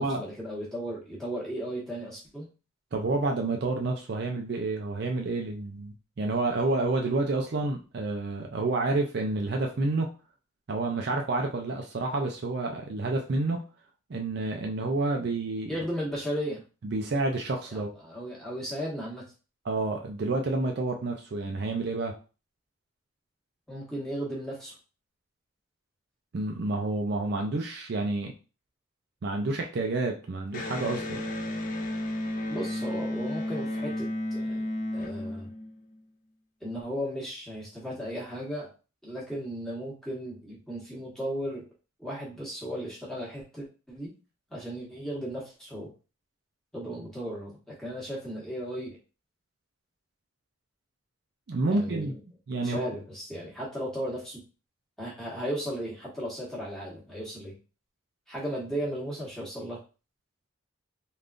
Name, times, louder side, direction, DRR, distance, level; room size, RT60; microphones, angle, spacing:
voice 1, 0.0-2.5 15.7-16.6 17.7-19.3 23.7-24.7 32.5-35.5 36.6-38.7 39.0-41.7 42.0-44.1 44.5-45.9 46.7-49.0 51.7-52.2 52.6-54.4 55.0-57.5 58.3-59.8, equal, 5° left, -6 dB, 1.1 m, -35 dB
voice 2, 2.9-10.1 10.7-13.6 14.1-15.7 16.8-17.9 19.7-22.1 26.3-28.3 29.2-31.2 51.5-52.2 52.5-52.9, right 2 dB, 55° right, 2 dB, 0.4 m, -29 dB
Electric guitar, 30.5-36.0, left 1 dB, 40° left, 0.4 m, -33 dB
3.5 x 2.3 x 2.5 m, 0.34 s
head